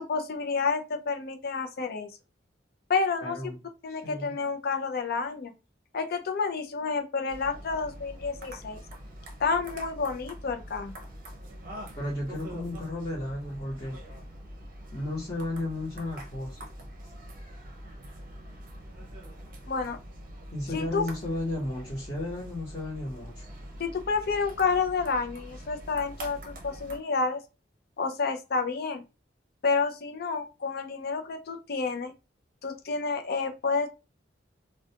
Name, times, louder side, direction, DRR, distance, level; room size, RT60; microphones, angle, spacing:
voice 1, 0.0-2.1 2.9-3.5 3.8-5.5 5.9-8.8 9.4-10.9 19.7-20.0 20.7-21.0 23.8-27.4 28.0-29.0 29.6-32.1 32.6-33.9, left 4 dB, 55° left, 0.5 m, -29 dB
voice 2, 3.2-3.6 3.9-4.3 12.0-14.0 14.9-16.6 20.5-23.5, left 1 dB, 30° left, 0.9 m, -34 dB
sound 1, 7.3-27.0, equal, 50° right, 0.6 m, -44 dB
2.3 x 2.2 x 2.7 m
head